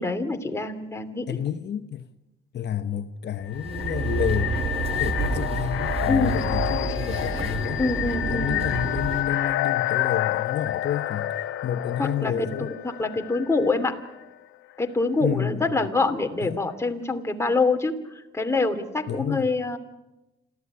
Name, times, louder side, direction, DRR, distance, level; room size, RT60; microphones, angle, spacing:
voice 1, 0.0-1.3 6.1-6.5 7.8-8.7 12.0-14.0 14.8-17.9 18.3-19.8, left 3 dB, 15° left, 2.8 m, -25 dB
voice 2, 1.3-2.1 2.5-7.8 8.3-11.3 11.6-12.7 15.2-15.8 16.4-16.6 19.1-19.5, left 9 dB, 60° left, 1.1 m, -30 dB
sound 1, 3.4-14.2, left 13 dB, 90° left, 0.9 m, -29 dB
sound 2, 3.4-9.2, right 4 dB, 30° right, 3.0 m, -29 dB
27.0 x 14.5 x 9.8 m
cardioid pair, 90°, 20 cm